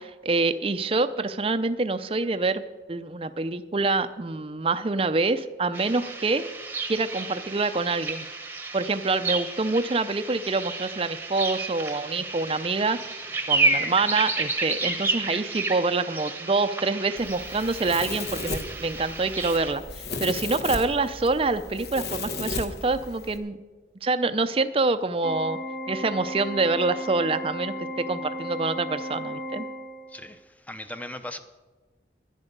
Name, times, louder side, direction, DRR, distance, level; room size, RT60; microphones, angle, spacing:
voice 1, 0.0-6.5 6.9-8.3 8.7-13.1 13.5-23.6 24.0-25.6 25.9-29.7, right 3 dB, 30° right, 11 dB, 0.5 m, -26 dB
sound 1, 5.7-19.7, right 3 dB, 10° right, 1.0 m, -31 dB
Domestic sounds home sounds, 17.2-23.4, left 3 dB, 70° left, 1.3 m, -35 dB
Organ, 25.2-30.3, equal, 45° left, 2.4 m, -35 dB
voice 2, 30.1-31.4, left 1 dB, 10° left, 9 dB, 0.7 m, -38 dB
11.0 x 10.5 x 6.7 m, 1.3 s
head